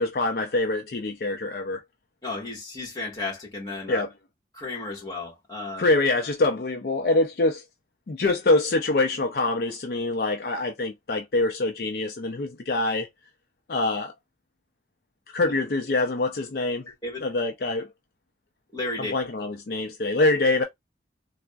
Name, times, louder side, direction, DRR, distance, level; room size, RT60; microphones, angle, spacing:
voice 1, 0.0-1.8 3.9-4.1 5.8-7.6 8.1-13.1 13.7-14.1 15.3-16.9 17.2-17.9 19.0-20.6, left 2 dB, 55° left, 0.4 m, -25 dB
voice 2, 2.2-4.0 4.5-5.9 15.4-15.5 16.9-17.3 18.7-19.1, left 2 dB, 20° left, 1.3 m, -33 dB
3.5 x 2.0 x 2.2 m
head